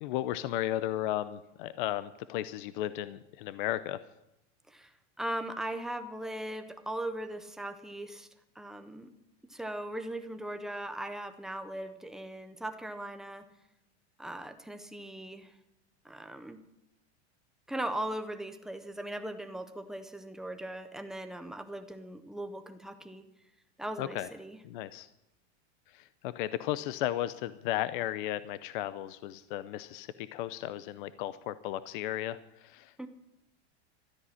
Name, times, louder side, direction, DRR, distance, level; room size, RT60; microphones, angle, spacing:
voice 1, 0.0-4.0 24.0-24.3 24.6-25.1 25.9-33.1, left 13 dB, 50° left, 15 dB, 0.6 m, -35 dB
voice 2, 4.7-8.3 8.6-9.1 9.5-13.5 14.2-15.5 16.0-16.6 17.7-23.2 23.8-24.6 33.0-33.1, right 1 dB, ahead, 7 dB, 0.5 m, -39 dB
13.0 x 9.9 x 9.8 m, 0.86 s
supercardioid pair, 170°, 33 cm